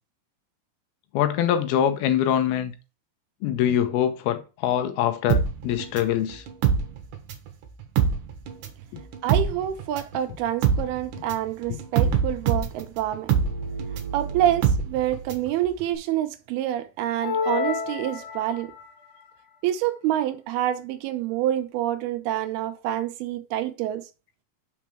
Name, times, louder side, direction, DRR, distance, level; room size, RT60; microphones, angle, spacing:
voice 1, 1.1-2.7 3.4-6.4 8.9-9.0 11.7-11.8, left 10 dB, 80° left, 2.7 m, -24 dB
sound 1, 5.3-7.5 7.8-15.5 15.8-15.9, right 7 dB, 65° right, 2.3 m, -24 dB
voice 2, 9.2-13.3 14.1-18.7 19.6-24.1, right 12 dB, 90° right, 2.6 m, -27 dB
sound 2, 17.2-18.9, left 6 dB, 60° left, 2.5 m, -29 dB
6.1 x 4.6 x 5.8 m
omnidirectional pair, 4.5 m